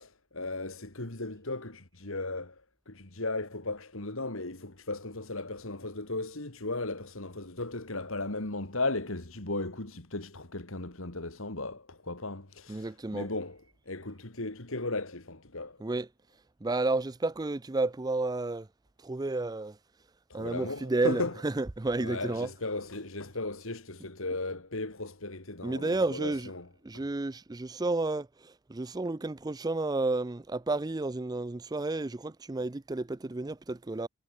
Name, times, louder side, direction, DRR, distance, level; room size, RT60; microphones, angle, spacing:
voice 1, 0.0-15.8 20.3-21.4 22.0-26.7 26.9-27.0, left 2 dB, 65° left, 2.8 m, -36 dB
voice 2, 12.7-13.3 15.8-16.1 16.6-18.7 19.0-19.8 20.3-22.5 25.6-26.5 26.8-34.1, right 2 dB, 20° right, 0.4 m, -31 dB
head